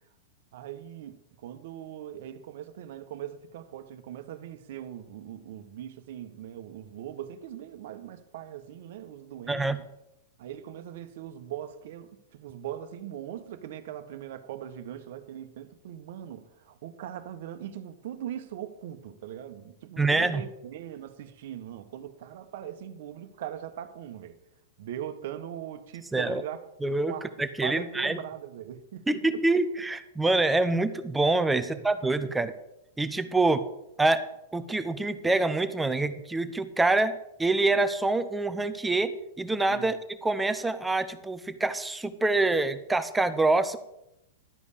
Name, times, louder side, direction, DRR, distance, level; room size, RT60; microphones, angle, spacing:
voice 1, 0.5-9.9 10.4-24.4 24.8-26.6 27.0-27.3 27.6-29.1 29.3-29.4 31.6-31.8 32.2-32.5 39.7-39.9, right 10 dB, 65° right, 1.2 m, -40 dB
voice 2, 9.5-9.8 20.0-20.4 26.1-26.4 26.8-28.2 29.1-32.5 33.0-33.6 34.0-34.3 34.5-39.1 39.4-43.8, right 2 dB, 10° right, 0.9 m, -26 dB
12.0 x 5.4 x 8.4 m
hypercardioid pair, 120°, 0 cm